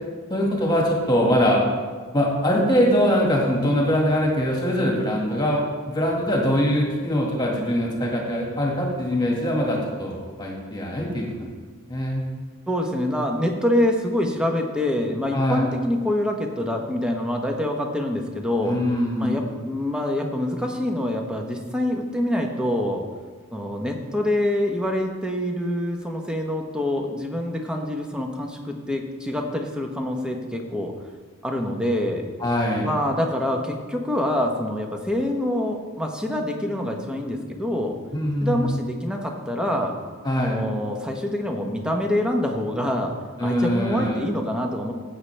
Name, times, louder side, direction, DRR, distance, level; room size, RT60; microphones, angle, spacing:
voice 1, 0.3-1.6 2.1-11.5 11.9-12.3 15.3-15.7 18.6-19.4 32.4-32.9 38.1-38.7 40.2-40.6 43.4-44.2, equal, 20° left, -2 dB, 1.8 m, -22 dB
voice 2, 12.7-18.7 19.2-23.0 23.5-30.9 31.4-32.3 32.8-38.0 38.4-39.9 40.4-43.1 43.4-44.9, left 1 dB, 5° right, 2 dB, 1.0 m, -25 dB
14.5 x 8.5 x 3.3 m, 1.5 s
head